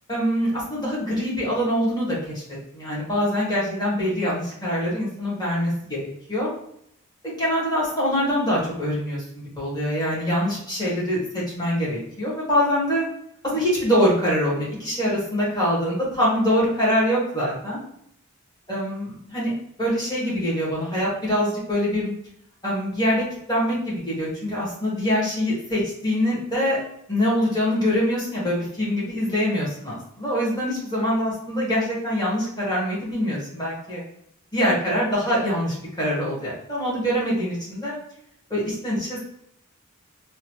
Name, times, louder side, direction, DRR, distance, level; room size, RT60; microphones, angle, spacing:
voice 1, 0.1-2.4 2.7-6.5 7.2-13.0 13.4-17.8 18.7-19.5 19.8-22.1 22.6-26.8 27.1-34.0 34.5-37.9 38.5-39.2, equal, 20° left, -7 dB, 1.2 m, -24 dB
2.9 x 2.2 x 2.9 m, 0.72 s
head